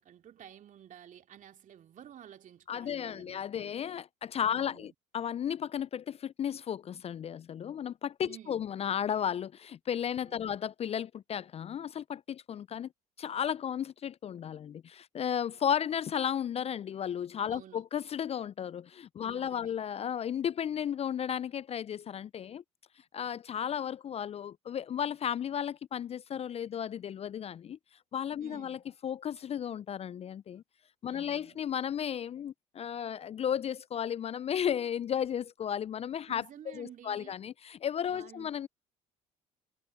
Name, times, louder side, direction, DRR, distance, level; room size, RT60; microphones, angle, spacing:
voice 1, 0.0-3.7 4.5-4.9 8.3-8.6 10.2-10.6 17.5-17.8 19.2-19.7 28.4-28.8 31.1-31.6 36.3-37.3 38.1-38.5, right 10 dB, 45° right, 2.7 m, -52 dB
voice 2, 2.7-12.9 13.2-22.6 23.1-27.8 28.1-30.6 31.0-38.7, left 9 dB, 35° left, 0.5 m, -34 dB
hypercardioid pair, 60°, 18 cm